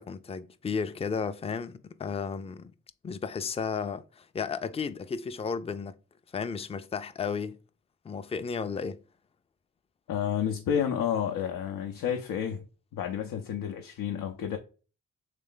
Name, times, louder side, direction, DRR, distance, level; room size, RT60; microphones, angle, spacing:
voice 1, 0.0-2.7 3.0-5.9 6.3-7.6 8.0-9.0, left 5 dB, 20° left, 0.4 m, -33 dB
voice 2, 10.1-12.6 12.9-14.6, left 8 dB, 85° left, 0.5 m, -30 dB
3.3 x 3.2 x 3.7 m
supercardioid pair, 50°, 33 cm